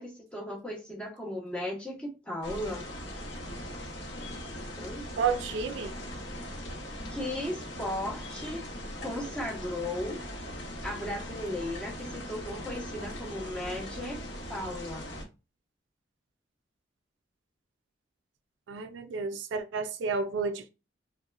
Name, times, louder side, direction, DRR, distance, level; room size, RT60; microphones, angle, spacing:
voice 1, 0.0-2.9 4.7-5.1 7.1-8.7 9.0-10.2 10.8-14.2 14.5-15.1, left 1 dB, 5° left, 0.5 m, -36 dB
sound 1, 2.4-15.2, equal, 75° left, 0.7 m, -40 dB
voice 2, 5.2-5.9 18.7-20.7, right 5 dB, 75° right, 0.3 m, -31 dB
2.9 x 2.1 x 2.3 m
head